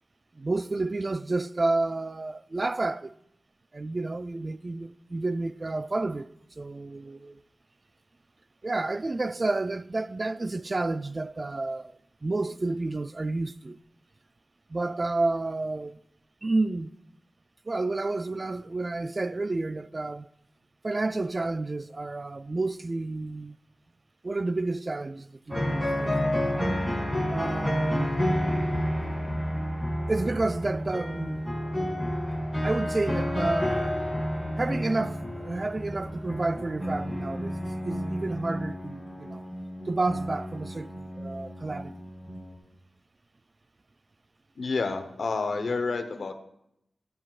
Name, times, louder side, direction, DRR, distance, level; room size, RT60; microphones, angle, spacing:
voice 1, 0.4-3.1 3.7-7.4 8.6-11.9 12.2-13.8 14.7-16.0 16.4-16.9 17.7-20.3 20.8-23.6 24.2-26.7 27.3-28.1 30.1-31.4 32.6-34.0 34.6-39.4 39.9-42.0, right 2 dB, 30° right, 0.3 m, -30 dB
sound 1, 25.5-42.5, equal, ahead, 2.3 m, -30 dB
voice 2, 44.6-46.3, left 4 dB, 65° left, 0.9 m, -29 dB
15.5 x 13.5 x 2.4 m
wide cardioid pair, 120°, 0 cm